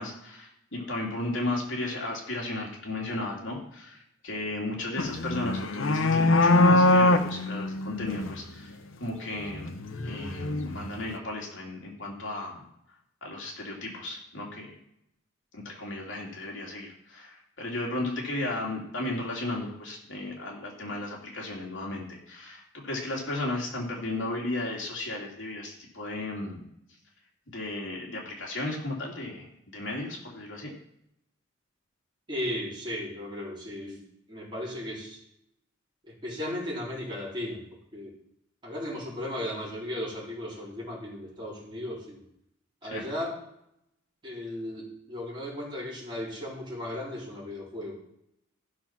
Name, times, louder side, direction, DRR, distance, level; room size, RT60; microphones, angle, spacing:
voice 1, 0.0-9.7 10.0-12.6 13.2-14.7 15.5-26.6 27.5-30.7 42.8-43.0, left 2 dB, 70° left, -1 dB, 2.9 m, -35 dB
sound 1, 5.0-8.4 9.5-11.1, left 2 dB, 85° left, 0.8 m, -23 dB
voice 2, 32.3-34.0 34.3-35.2 36.1-37.6 37.9-38.1 38.6-42.2 42.8-43.4 44.2-47.9, left 1 dB, 25° right, -5 dB, 3.8 m, -36 dB
14.5 x 5.9 x 5.9 m, 0.77 s
head